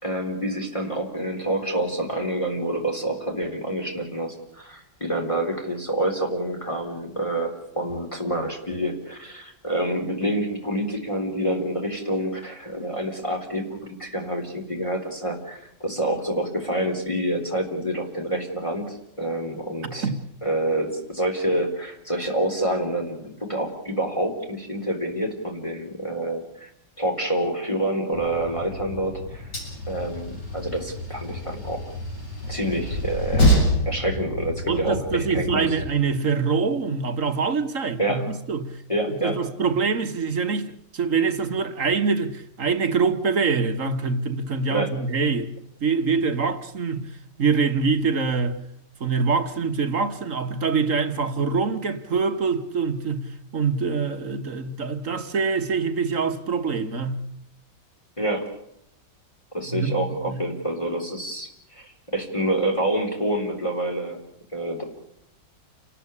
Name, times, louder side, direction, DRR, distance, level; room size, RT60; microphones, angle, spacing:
voice 1, 0.0-20.1 20.4-26.7 27.0-29.5 29.9-31.9 32.5-33.5 33.9-35.7 38.0-38.3 38.9-39.4 44.7-44.9 58.2-58.5 59.5-64.2 64.5-64.8, right 1 dB, 15° left, 3.8 m, -27 dB
voice 2, 19.8-20.2 34.7-38.8 39.1-45.5 45.8-47.1 47.4-48.6 49.0-57.2 59.7-60.4, right 5 dB, 50° right, 1.6 m, -25 dB
Train, 28.1-35.9, equal, 70° left, 8.2 m, -27 dB
29.5 x 13.5 x 8.5 m
omnidirectional pair, 1.9 m